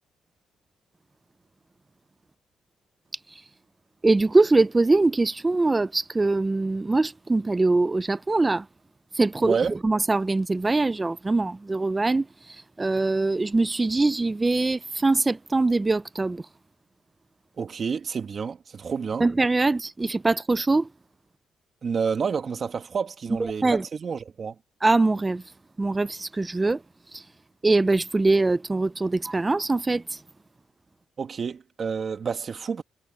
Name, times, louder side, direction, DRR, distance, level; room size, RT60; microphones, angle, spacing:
voice 1, 4.0-8.6 9.2-9.6 9.8-12.3 12.8-16.4 19.2-20.9 23.6-23.8 24.8-25.4 25.8-26.8 27.1-27.2 27.6-30.2, right 3 dB, 20° right, 0.7 m, -22 dB
voice 2, 9.4-9.8 17.6-19.3 21.8-24.6 31.2-32.8, right 6 dB, 45° right, 2.1 m, -29 dB
cardioid pair, 90°, 0 cm